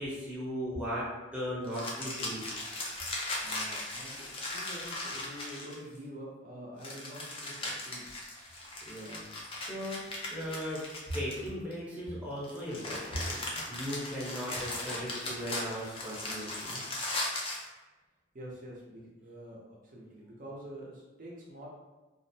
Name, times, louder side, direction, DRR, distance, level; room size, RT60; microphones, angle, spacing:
voice 1, 0.0-2.5 8.9-9.3 9.6-10.9 11.1-16.8, equal, 5° right, -8 dB, 0.8 m, -37 dB
sound 1, 1.7-6.0 6.8-11.7 12.4-17.7, left 2 dB, 30° left, 0.4 m, -38 dB
voice 2, 3.4-8.1 18.3-21.7, equal, 45° right, -4 dB, 0.7 m, -46 dB
2.5 x 2.0 x 2.7 m, 1.2 s
head